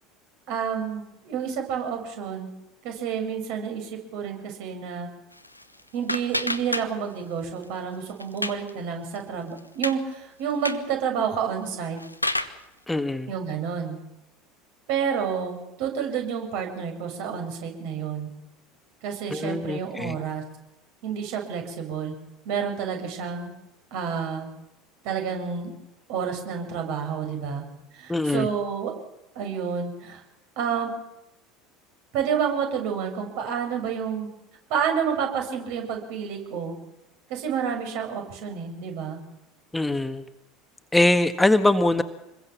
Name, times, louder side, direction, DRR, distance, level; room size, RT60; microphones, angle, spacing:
voice 1, 0.5-2.5 2.8-5.1 5.9-12.0 13.3-14.0 14.9-18.3 19.0-20.4 21.0-22.1 22.5-23.5 23.9-24.5 25.0-25.7 26.1-27.7 27.9-28.9 29.4-30.2 30.6-30.9 32.1-34.3 34.7-36.8 37.3-39.2, right 7 dB, 55° right, 4 dB, 7.0 m, -29 dB
sound 1, 5.3-7.3 7.6-8.7 9.1-9.2 9.6-10.0 10.5-10.9 11.7-12.6, left 1 dB, 90° left, 1.2 m, -30 dB
voice 2, 12.9-13.3 19.3-20.2 28.1-28.5 39.7-40.2 40.9-42.0, left 2 dB, 10° left, 9 dB, 1.5 m, -22 dB
27.5 x 22.0 x 7.3 m, 0.89 s
figure-of-eight pair, 70°, 0 cm